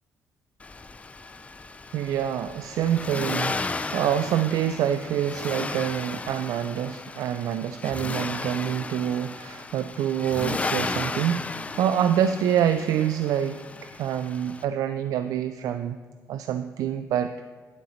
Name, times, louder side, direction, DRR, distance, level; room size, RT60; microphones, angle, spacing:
Accelerating revving vroom, 0.6-14.6, left 3 dB, 25° left, 0.4 m, -34 dB
voice 1, 1.9-13.6 14.0-16.0 16.3-17.3, right 10 dB, 80° right, 10 dB, 0.3 m, -26 dB
11.5 x 7.8 x 3.1 m, 1.4 s
cardioid pair, 85°, 6 cm